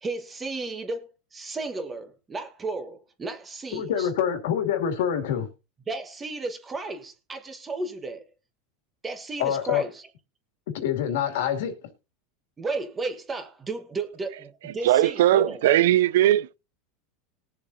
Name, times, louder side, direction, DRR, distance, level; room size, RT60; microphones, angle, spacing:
voice 1, 0.0-4.1 5.9-8.2 9.0-10.0 12.6-15.6, right 3 dB, 15° right, 1.5 m, -34 dB
voice 2, 3.7-5.5 9.4-9.8 10.7-11.7, left 9 dB, 75° left, 2.5 m, -26 dB
voice 3, 14.8-16.6, right 13 dB, 80° right, 0.4 m, -19 dB
20.5 x 7.1 x 2.8 m
supercardioid pair, 165°, 0 cm